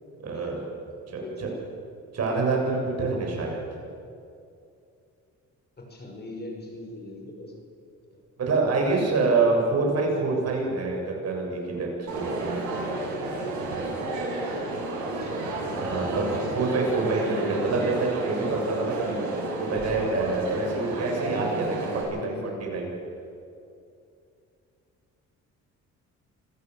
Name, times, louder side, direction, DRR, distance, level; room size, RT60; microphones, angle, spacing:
voice 1, 0.2-0.6 1.1-1.5 2.1-3.6 8.4-12.5 15.8-19.2 19.6-22.9, right 3 dB, 55° right, 0 dB, 7.5 m, -26 dB
voice 2, 1.2-1.6 3.8-3.9 5.8-7.5 15.1-15.5 22.2-22.6, left 2 dB, 35° left, 2 dB, 5.9 m, -41 dB
Crowd, 12.1-22.0, right 2 dB, 75° right, 8.0 m, -31 dB
26.0 x 17.0 x 7.8 m, 2.5 s
cardioid pair, 90°, 30 cm